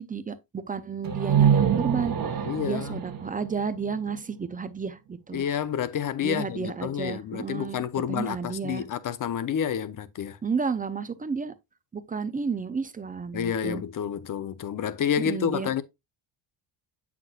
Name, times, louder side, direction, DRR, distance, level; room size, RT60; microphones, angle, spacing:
voice 1, 0.0-2.1 2.6-5.4 6.2-7.8 8.1-8.8 10.4-11.5 11.9-13.8 15.2-15.7, right 5 dB, 20° right, 0.4 m, -32 dB
sound 1, 1.0-4.8, right 8 dB, 45° right, 1.1 m, -26 dB
voice 2, 2.4-3.0 5.3-10.4 13.3-15.8, left 8 dB, 40° left, 0.6 m, -29 dB
7.7 x 5.9 x 2.3 m
cardioid pair, 120°, 50 cm